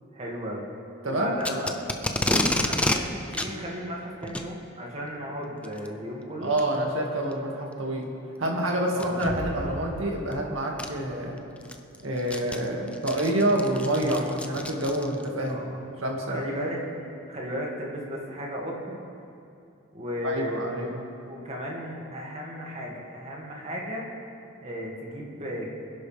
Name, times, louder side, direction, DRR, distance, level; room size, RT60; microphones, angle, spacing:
voice 1, 0.1-0.7 1.0-1.8 2.2-6.5 8.9-9.2 15.5-15.8 16.3-16.8 17.3-19.0 19.9-20.6 21.3-24.1 24.6-25.7, equal, 35° right, -3 dB, 2.2 m, -35 dB
voice 2, 1.0-1.4 6.4-8.1 8.4-11.4 12.0-15.7 16.0-16.5 20.2-21.0, right 1 dB, 90° right, 0 dB, 2.2 m, -27 dB
Packing tape duct tape, 1.4-3.0 3.3-3.5 4.2-4.5 5.6-5.9 6.6-6.7 7.3-7.4 8.9-9.2 10.3-10.4 10.8-10.9 11.4-15.3, left 1 dB, 5° left, 0.6 m, -29 dB
sound 1, 9.2-13.2, equal, 30° left, 1.4 m, -40 dB
24.5 x 11.0 x 3.5 m, 2.6 s
head